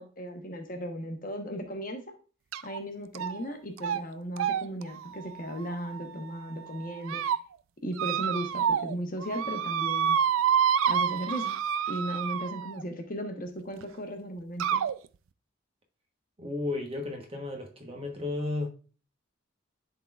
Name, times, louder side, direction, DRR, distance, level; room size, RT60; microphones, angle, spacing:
voice 1, 0.0-2.0 2.6-7.2 7.8-10.2 10.9-11.6 11.9-14.8, equal, 40° left, 1.0 m, -36 dB
sound 1, 2.5-2.8 3.2-3.5 3.8-4.0 4.4-6.3 6.8-7.4 8.0-9.0 9.2-12.8 13.8-13.9 14.6-14.9, right 8 dB, 70° right, 0.4 m, -28 dB
voice 2, 16.4-18.7, left 2 dB, 25° right, 1.1 m, -33 dB
11.0 x 3.9 x 2.4 m
head